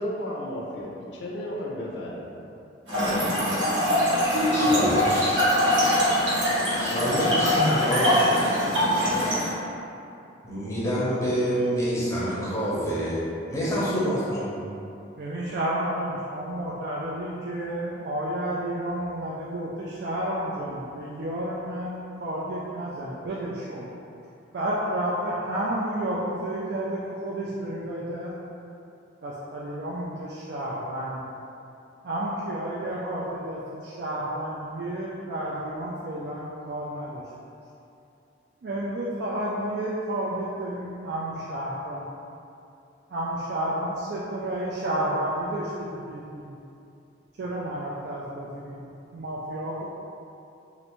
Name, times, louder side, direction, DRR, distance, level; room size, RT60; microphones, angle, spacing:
voice 1, 0.0-2.3, left 1 dB, 65° left, -3 dB, 0.4 m, -33 dB
Trickle dribble / Fill (with liquid), 2.9-9.5, equal, 85° right, 1.1 m, -22 dB
voice 2, 4.5-5.4 6.8-8.2 10.4-14.5, equal, 15° left, -8 dB, 0.7 m, -27 dB
voice 3, 15.2-23.9 24.5-28.3 29.2-31.3 32.0-37.2 38.6-42.1 43.1-46.6 47.4-49.8, right 1 dB, 60° right, -6 dB, 0.3 m, -31 dB
3.1 x 2.5 x 3.0 m, 2.7 s
head